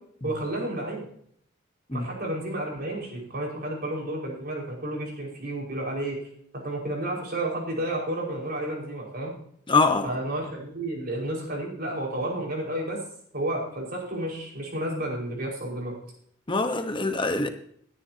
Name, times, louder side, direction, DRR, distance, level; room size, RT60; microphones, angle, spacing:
voice 1, 0.2-1.1 1.9-6.2 6.5-9.3 10.0-13.0 13.3-15.9, right 1 dB, 50° right, 5.3 m, -31 dB
voice 2, 9.7-10.1 16.5-17.5, left 3 dB, 25° left, 1.2 m, -24 dB
19.0 x 10.5 x 2.9 m
head